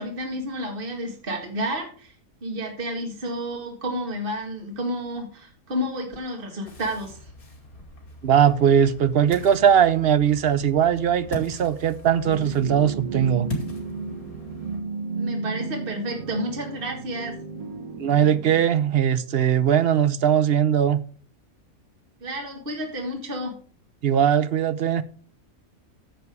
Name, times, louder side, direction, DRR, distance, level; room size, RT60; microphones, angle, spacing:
voice 1, 0.0-2.1 2.4-7.2 15.2-17.4 22.2-23.5, equal, 40° right, 2.1 m, -31 dB
Ocean, 6.6-14.8, equal, 75° left, 2.9 m, -40 dB
voice 2, 8.2-13.5 18.0-21.0 24.0-25.0, right 9 dB, 60° right, 0.7 m, -20 dB
sound 1, 12.2-18.6, right 4 dB, 75° right, 1.8 m, -33 dB
10.5 x 7.0 x 4.7 m
omnidirectional pair, 1.5 m